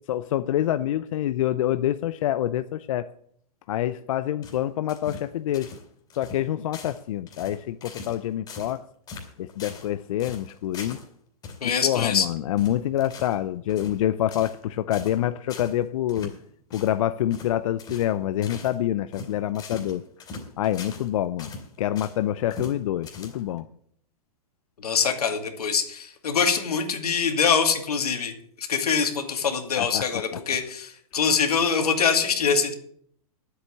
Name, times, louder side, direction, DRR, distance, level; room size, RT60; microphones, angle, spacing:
voice 1, 0.1-3.1 3.7-5.7 6.2-8.8 9.4-11.0 11.6-16.3 16.7-20.0 20.6-23.6 29.8-30.0, left 12 dB, 60° left, 12 dB, 0.6 m, -26 dB
sound 1, 4.4-5.3 5.5-5.8 6.1-6.4 6.7-7.0 7.3-8.2 8.5-8.8 9.1-9.9 10.2-11.1 11.4-11.6 11.9-12.2 12.6-13.4 13.7-14.0 14.3-14.6 14.9-15.2 15.5-15.8 16.1-16.4 16.7-17.0 17.3-17.5 17.8-18.1 18.4-18.8 19.1-21.1 21.4-22.2 22.5-22.8 23.0-23.6, left 3 dB, 20° left, 3.0 m, -40 dB
voice 2, 11.6-12.3 24.8-32.7, left 6 dB, 90° left, 5 dB, 2.5 m, -24 dB
9.9 x 8.1 x 8.6 m, 0.65 s
hypercardioid pair, 145°, 19 cm